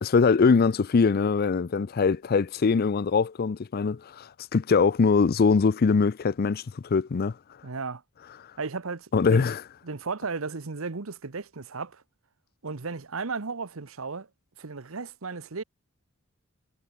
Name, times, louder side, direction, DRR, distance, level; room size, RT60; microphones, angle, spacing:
voice 1, 0.0-7.4 9.1-9.6, left 5 dB, 50° left, 0.4 m, -22 dB
voice 2, 7.6-8.0 8.6-9.5 9.8-12.0 12.6-14.3 14.6-15.6, right 4 dB, 85° right, 1.1 m, -34 dB
head